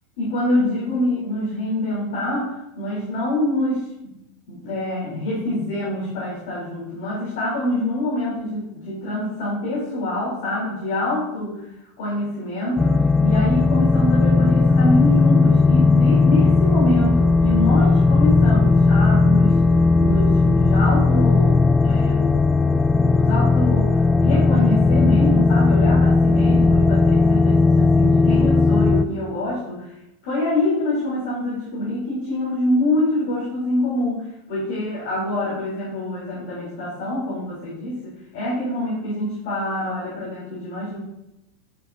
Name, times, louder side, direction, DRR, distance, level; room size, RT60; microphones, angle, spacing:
voice 1, 0.2-4.2 4.5-11.6 12.0-19.6 20.0-22.5 23.0-29.9 30.2-41.0, left 1 dB, 60° left, -7 dB, 2.8 m, -25 dB
sound 1, 12.8-29.0, left 3 dB, 10° left, 0.4 m, -16 dB
8.9 x 6.9 x 2.5 m, 0.89 s
figure-of-eight pair, 85°, 0 cm